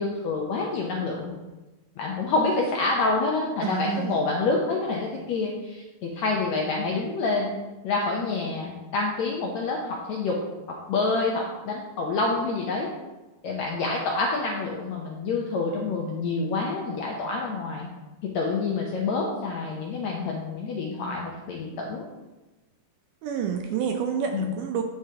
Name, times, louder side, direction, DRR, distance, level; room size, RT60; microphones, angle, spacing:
voice 1, 0.0-1.3 2.0-7.5 7.8-10.4 10.9-12.9 13.4-17.9 18.3-22.1 24.3-24.5, left 3 dB, 75° left, -1 dB, 1.6 m, -27 dB
voice 2, 3.6-4.2 23.2-24.8, right 7 dB, 80° right, 4 dB, 1.9 m, -28 dB
12.0 x 4.8 x 2.8 m, 1.1 s
omnidirectional pair, 4.1 m